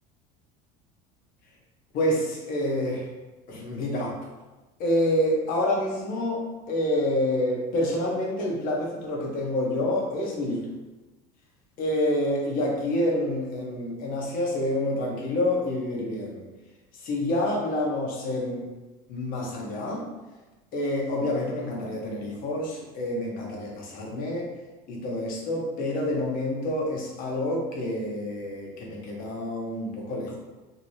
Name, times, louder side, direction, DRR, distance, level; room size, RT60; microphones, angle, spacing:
voice 1, 1.9-3.1 3.5-4.2 4.8-10.7 11.8-16.5 17.0-18.7 19.1-20.1 20.7-24.5 24.9-30.4, left 1 dB, 50° left, -2 dB, 1.0 m, -28 dB
2.9 x 2.7 x 3.1 m, 1.1 s
supercardioid pair, 130°, 19 cm